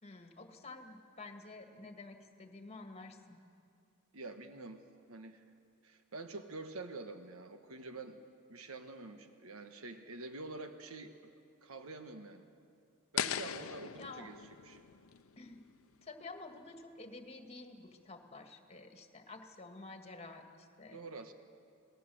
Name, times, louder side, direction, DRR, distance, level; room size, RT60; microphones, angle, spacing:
voice 1, 0.0-3.4 14.0-14.3 15.4-15.6 16.0-21.0, left 3 dB, 30° left, 5 dB, 2.0 m, -50 dB
voice 2, 4.1-5.4 5.8-8.2 8.5-11.1 11.6-12.5 13.1-14.8 20.9-21.3, right 3 dB, 75° right, 7 dB, 1.3 m, -47 dB
sound 1, 13.2-16.2, left 9 dB, 75° left, 0.7 m, -40 dB
28.5 x 18.5 x 7.8 m, 2.4 s
head